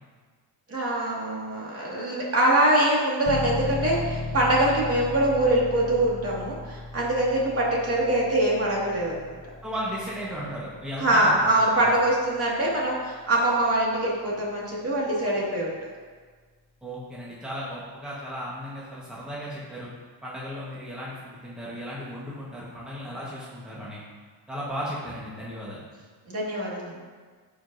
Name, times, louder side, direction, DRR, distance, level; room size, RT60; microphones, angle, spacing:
voice 1, 0.7-9.4 11.0-15.9 26.3-27.0, right 1 dB, 35° right, -4 dB, 2.1 m, -24 dB
sound 1, 3.3-13.8, left 3 dB, 15° left, 0.8 m, -37 dB
voice 2, 9.6-11.9 16.8-19.9 20.2-24.0 24.5-25.8, equal, ahead, -7 dB, 1.3 m, -35 dB
15.0 x 5.1 x 2.7 m, 1.5 s
cardioid pair, 140°, 42 cm